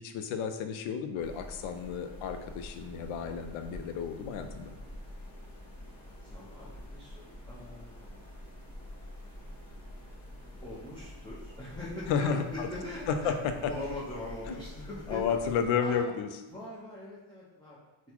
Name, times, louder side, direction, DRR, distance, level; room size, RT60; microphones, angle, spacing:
voice 1, 0.0-4.8 12.1-12.7 13.1-13.7 14.5-14.6 15.1-16.3, left 6 dB, 75° left, 8 dB, 0.5 m, -32 dB
sound 1, 1.2-15.7, left 1 dB, 35° left, 1.4 m, -47 dB
voice 2, 6.0-8.5 10.6-13.4 13.6-15.4 15.8-16.1 16.5-17.8, left 1 dB, 10° left, -8 dB, 0.6 m, -42 dB
3.8 x 2.2 x 2.9 m, 1.1 s
cardioid pair, 120°, 48 cm